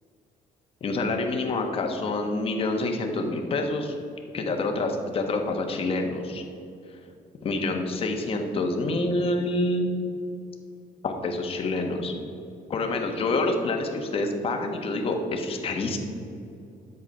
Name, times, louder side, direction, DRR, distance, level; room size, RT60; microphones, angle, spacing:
voice 1, 0.8-3.9 4.3-6.4 7.4-9.9 11.0-12.2 12.7-16.0, left 2 dB, 40° left, 3 dB, 1.2 m, -27 dB
10.0 x 8.0 x 5.4 m, 2.6 s
cardioid pair, 145°, 15 cm